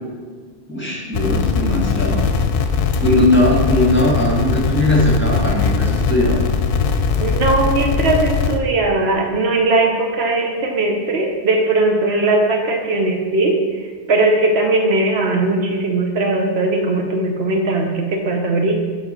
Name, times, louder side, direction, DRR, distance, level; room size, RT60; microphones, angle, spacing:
voice 1, 0.7-2.2 3.0-6.5, left 1 dB, 10° left, -3 dB, 1.4 m, -18 dB
sound 1, 1.1-8.6, left 5 dB, 65° left, 0.8 m, -20 dB
voice 2, 7.2-13.6 14.1-18.7, right 2 dB, 75° right, 3 dB, 1.1 m, -18 dB
7.2 x 3.9 x 6.5 m, 1.5 s
omnidirectional pair, 1.1 m